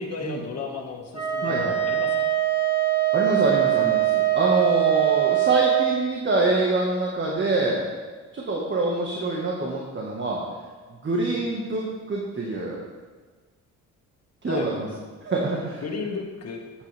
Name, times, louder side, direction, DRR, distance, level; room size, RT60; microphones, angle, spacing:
voice 1, 0.0-2.3 14.5-14.7 15.8-16.6, left 4 dB, 55° left, 1 dB, 2.0 m, -33 dB
Wind instrument woodwind instrument, 1.1-6.0, right 13 dB, 15° right, 2.2 m, -22 dB
voice 2, 1.4-1.8 3.1-7.9 8.3-10.4 11.0-12.8 14.4-14.9 15.2-15.8, right 2 dB, 40° right, -3 dB, 1.8 m, -25 dB
12.0 x 9.1 x 3.6 m, 1.4 s
cardioid pair, 90°, 30 cm